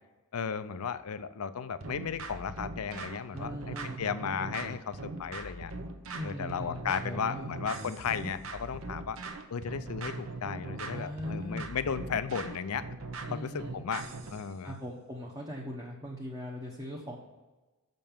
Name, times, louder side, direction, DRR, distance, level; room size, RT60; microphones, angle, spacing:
voice 1, 0.3-5.7 6.2-9.2 9.5-12.9 13.3-14.0 14.3-14.7, left 6 dB, 80° left, 13 dB, 0.5 m, -35 dB
sound 1, 1.8-14.5, right 3 dB, 65° right, 0.8 m, -41 dB
voice 2, 3.3-4.0 6.1-7.5 10.9-11.7 13.3-13.9 14.6-17.2, equal, 15° right, -3 dB, 0.9 m, -40 dB
6.9 x 5.3 x 7.2 m, 1.2 s
head